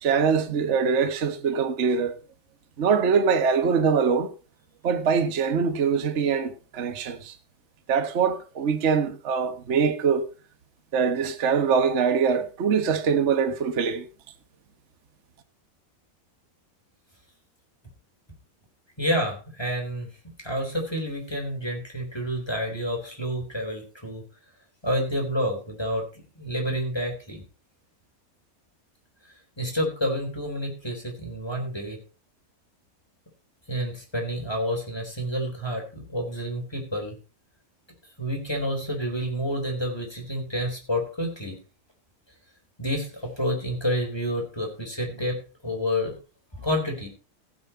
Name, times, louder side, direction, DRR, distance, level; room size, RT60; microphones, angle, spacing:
voice 1, 0.0-2.1 2.8-4.3 4.8-7.3 7.9-10.3 10.9-14.1, right 6 dB, 40° right, 1.2 m, -23 dB
voice 2, 19.0-20.1 20.4-24.2 24.8-26.0 26.4-27.4 29.6-32.0 33.7-37.2 38.2-41.6 42.8-46.1 46.6-47.1, equal, 10° left, 3.7 m, -29 dB
15.5 x 7.8 x 4.3 m
omnidirectional pair, 2.4 m